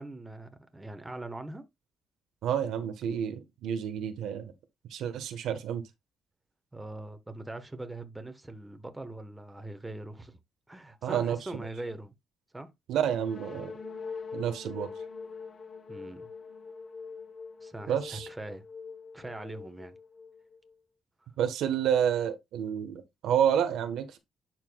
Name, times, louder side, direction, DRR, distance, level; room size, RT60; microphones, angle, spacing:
voice 1, 0.0-1.6 6.7-10.4 10.7-12.1 12.5-12.7 15.9-16.3 17.6-18.6 19.1-20.0, right 2 dB, 15° right, 1.2 m, -41 dB
voice 2, 2.4-4.5 4.9-5.8 11.0-11.4 12.9-13.7 14.3-14.9 17.9-18.3 21.4-24.2, right 9 dB, 80° right, 1.2 m, -29 dB
sound 1, 13.0-20.7, left 4 dB, 45° left, 1.1 m, -43 dB
11.5 x 4.6 x 2.3 m
cardioid pair, 90°, 0 cm